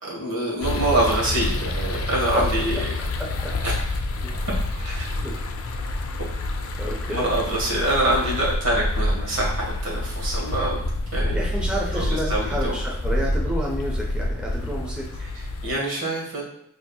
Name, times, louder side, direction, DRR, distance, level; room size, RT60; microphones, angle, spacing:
voice 1, 0.0-2.8 3.6-3.7 4.8-5.1 7.1-10.8 11.1-11.4 11.9-12.8 15.2-16.4, right 1 dB, 65° right, -4 dB, 1.3 m, -25 dB
sound 1, 0.6-15.8, left 1 dB, 80° left, 0.5 m, -27 dB
voice 2, 3.2-3.5 4.2-4.3 5.2-5.3 6.8-7.3 11.3-15.1, equal, 5° right, -3 dB, 0.5 m, -29 dB
5.0 x 2.7 x 2.3 m, 0.79 s
head